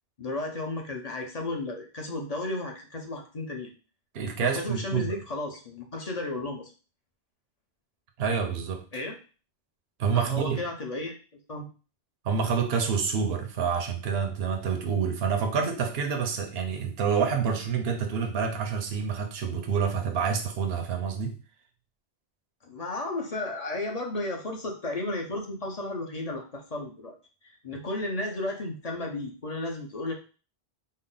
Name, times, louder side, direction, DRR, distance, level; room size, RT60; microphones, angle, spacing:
voice 1, 0.2-3.7 4.4-6.7 8.9-9.1 10.1-11.2 11.5-11.7 22.6-27.1 27.4-30.1, left 2 dB, 40° left, 1 dB, 0.8 m, -33 dB
voice 2, 4.1-5.2 8.2-8.8 10.0-10.6 12.2-21.4, right 6 dB, 75° right, 4 dB, 0.9 m, -28 dB
4.2 x 2.0 x 3.9 m, 0.35 s
omnidirectional pair, 1.1 m